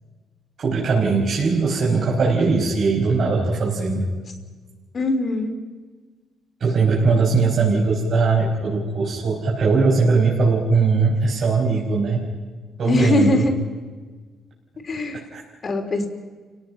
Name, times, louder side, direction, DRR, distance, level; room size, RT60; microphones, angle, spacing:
voice 1, 0.6-4.0 6.6-12.2 12.8-13.5 15.3-15.4, right 4 dB, 55° right, -4 dB, 5.2 m, -20 dB
voice 2, 4.9-5.5 12.8-13.5 14.8-15.2 15.6-16.1, left 2 dB, 45° left, 4 dB, 3.4 m, -21 dB
30.0 x 17.5 x 5.9 m, 1.4 s
cardioid pair, 90°, 0 cm